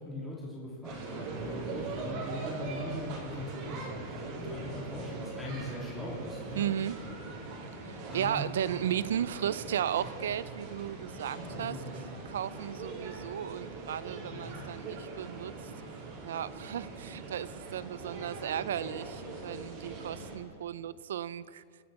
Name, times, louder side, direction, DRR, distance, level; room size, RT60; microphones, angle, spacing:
voice 1, 0.0-6.9 8.1-8.5 11.3-12.0 14.2-14.6, equal, 5° left, -7 dB, 3.2 m, -40 dB
Leaves at Clissold Park, 0.8-20.3, right 3 dB, 45° right, 3.5 m, -41 dB
voice 2, 6.5-7.0 7.8-11.8 12.2-15.5 16.2-21.6, right 10 dB, 85° right, 18 dB, 0.5 m, -35 dB
25.0 x 10.5 x 4.3 m, 2.4 s
supercardioid pair, 150°, 0 cm